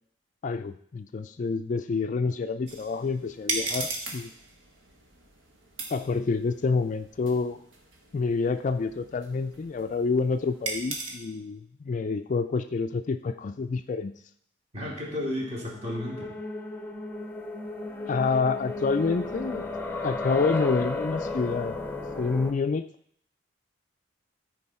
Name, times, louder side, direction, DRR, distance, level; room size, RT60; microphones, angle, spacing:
voice 1, 0.4-4.3 5.9-7.6 8.1-14.1 18.1-19.7 20.0-21.8 22.2-22.8, left 4 dB, 40° left, 10 dB, 0.3 m, -28 dB
sound 1, 2.7-11.2, right 3 dB, 85° right, 1.5 m, -38 dB
voice 2, 14.7-16.3, left 1 dB, 35° right, -4 dB, 2.6 m, -33 dB
sound 2, 15.2-22.5, left 2 dB, 10° left, 0.7 m, -34 dB
13.5 x 4.8 x 4.3 m, 0.66 s
head